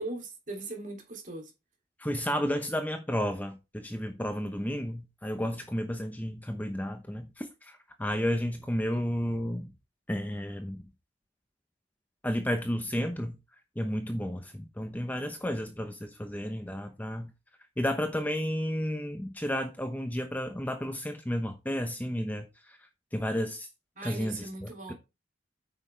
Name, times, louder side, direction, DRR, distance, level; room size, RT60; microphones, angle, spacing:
voice 1, 0.0-1.5 23.9-24.9, right 2 dB, 40° right, 3.0 m, -39 dB
voice 2, 2.0-9.7 10.1-10.8 12.2-13.4 13.8-17.3 17.8-22.5 23.1-23.7 24.0-24.9, equal, 10° left, 0.9 m, -32 dB
8.8 x 6.3 x 3.4 m
head